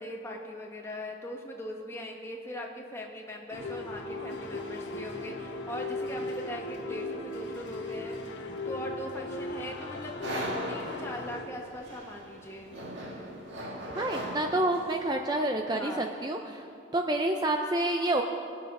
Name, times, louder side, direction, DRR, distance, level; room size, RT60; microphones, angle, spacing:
voice 1, 0.0-8.2 8.6-10.1 10.7-12.8 15.7-16.1, left 1 dB, 15° left, 0 dB, 1.3 m, -40 dB
sound 1, 3.5-11.4, left 2 dB, 70° left, 1.4 m, -37 dB
sound 2, 10.2-15.2, equal, 75° right, 1.8 m, -38 dB
voice 2, 13.9-16.6 16.9-18.2, right 1 dB, 20° right, 3 dB, 0.5 m, -28 dB
21.5 x 7.5 x 5.4 m, 2.7 s
head